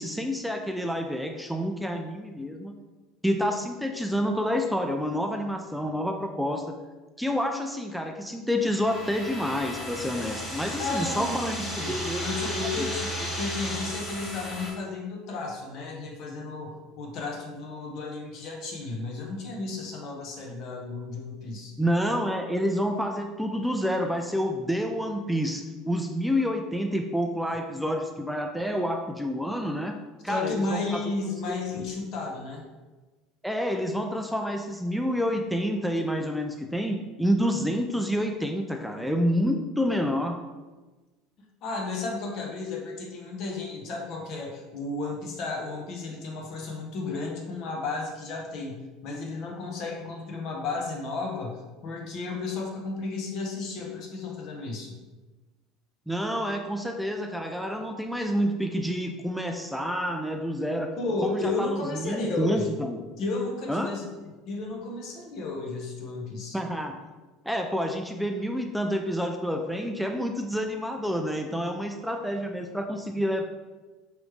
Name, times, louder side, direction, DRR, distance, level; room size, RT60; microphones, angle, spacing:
voice 1, 0.0-2.7 3.2-6.8 7.2-12.2 12.8-12.9 21.8-30.0 30.2-31.1 33.4-40.4 56.1-60.9 61.2-63.0 63.7-64.0 66.5-67.0 67.4-73.4, equal, ahead, 4 dB, 0.3 m, -28 dB
sound 1, 8.6-14.7, equal, 20° left, 1.4 m, -34 dB
voice 2, 10.8-21.7 30.3-32.6 41.6-48.8 49.0-54.9 61.0-62.7 63.2-64.0 64.5-66.6, left 3 dB, 55° left, 0 dB, 1.0 m, -33 dB
5.0 x 3.1 x 3.2 m, 1.2 s
supercardioid pair, 110°, 0 cm